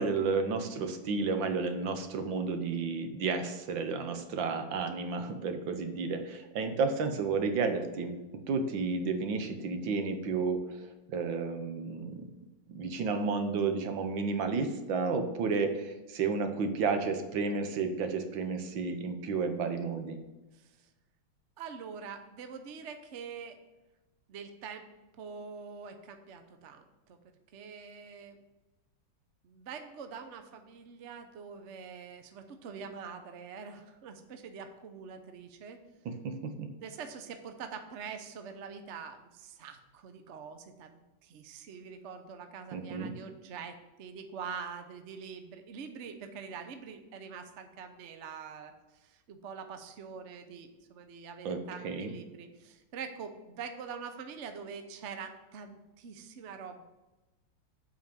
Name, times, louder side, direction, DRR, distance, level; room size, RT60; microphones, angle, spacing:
voice 1, 0.0-8.1 8.5-10.6 11.1-12.3 12.7-20.2 36.0-36.7 42.7-43.1 51.4-52.1, right 4 dB, 70° right, 7 dB, 1.6 m, -32 dB
voice 2, 20.5-20.9 21.6-23.6 24.3-27.2 27.5-28.4 29.4-35.8 36.8-56.8, right 6 dB, 55° right, 7 dB, 0.8 m, -45 dB
7.9 x 5.2 x 6.8 m, 1.1 s
omnidirectional pair, 2.2 m